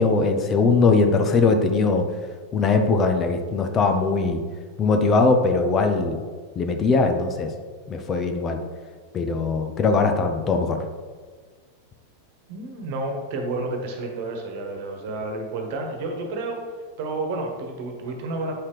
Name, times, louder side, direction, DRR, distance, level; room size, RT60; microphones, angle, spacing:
voice 1, 0.0-2.1 2.5-4.4 4.8-6.2 6.6-7.5 7.9-8.6 9.1-10.8, left 4 dB, 25° left, 5 dB, 0.7 m, -20 dB
voice 2, 12.5-16.6 17.0-18.7, right 2 dB, 50° right, 2 dB, 1.4 m, -30 dB
8.7 x 5.7 x 3.3 m, 1.5 s
figure-of-eight pair, 90°, 0 cm